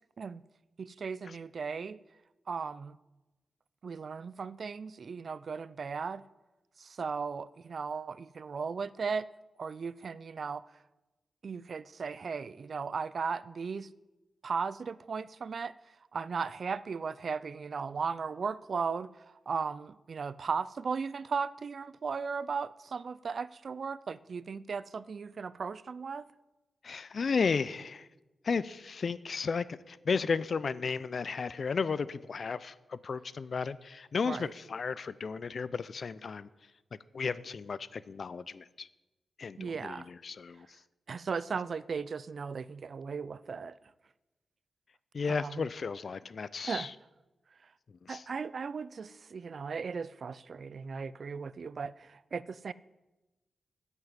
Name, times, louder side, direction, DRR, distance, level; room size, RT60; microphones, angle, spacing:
voice 1, 0.8-2.0 2.5-3.0 3.8-6.2 6.8-9.3 9.6-10.6 11.4-13.9 14.4-15.7 16.1-19.1 19.5-26.3 34.2-34.5 39.6-40.1 41.1-43.8 45.3-45.6 46.6-46.9 48.1-52.7, right 5 dB, 55° right, 18 dB, 0.4 m, -36 dB
voice 2, 26.8-28.1 28.4-36.5 37.1-38.9 39.4-40.7 45.1-46.9 48.0-48.2, left 5 dB, 55° left, 18 dB, 0.4 m, -34 dB
10.5 x 8.1 x 7.4 m, 1.1 s
wide cardioid pair, 110°, 0 cm